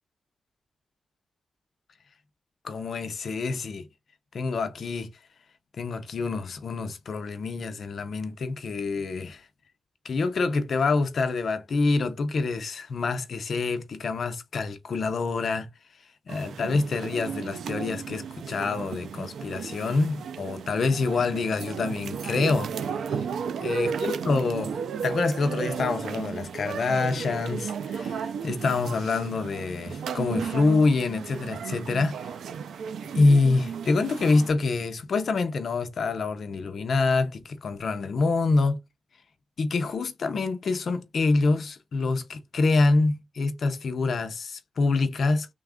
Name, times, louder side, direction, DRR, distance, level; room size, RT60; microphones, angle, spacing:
voice 1, 2.6-3.9 4.3-5.1 5.8-9.5 10.0-15.7 16.3-22.7 23.1-23.2 23.6-24.7 25.0-32.3 33.1-38.8 39.6-45.5, left 3 dB, 45° left, 0.5 m, -26 dB
sound 1, 16.3-34.5, right 7 dB, 80° right, 0.4 m, -34 dB
3.3 x 2.3 x 3.5 m
wide cardioid pair, 180°, 0 cm